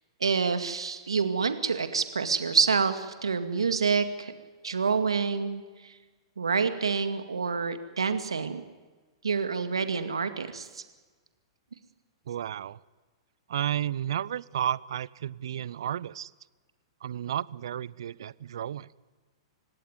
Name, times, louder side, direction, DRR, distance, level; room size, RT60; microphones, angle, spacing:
voice 1, 0.2-4.3 4.6-5.9 6.4-8.6 9.2-10.8, right 5 dB, 80° right, 9 dB, 2.2 m, -27 dB
voice 2, 12.3-12.8 13.5-16.3 17.0-18.9, right 10 dB, 65° right, 22 dB, 0.7 m, -32 dB
28.5 x 17.0 x 9.7 m, 1.3 s
figure-of-eight pair, 110°, 3 cm